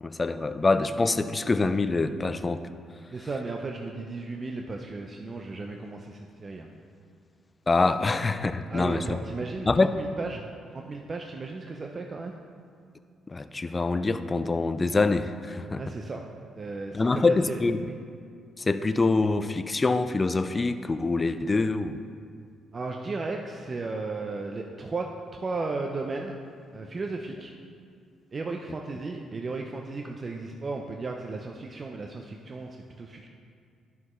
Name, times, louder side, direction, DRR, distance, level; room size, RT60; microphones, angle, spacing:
voice 1, 0.0-2.6 7.7-9.2 9.7-9.9 13.3-15.8 16.9-17.8 18.6-22.0, left 3 dB, 25° left, 10 dB, 0.3 m, -25 dB
voice 2, 3.1-6.7 8.7-9.7 10.0-10.4 10.7-12.3 15.8-16.2 16.6-17.6 17.9-18.0 22.7-26.4 26.7-27.5 28.3-32.7 33.0-33.3, right 3 dB, 35° right, 2 dB, 0.5 m, -35 dB
11.5 x 5.8 x 3.1 m, 2.3 s
cardioid pair, 90°, 0 cm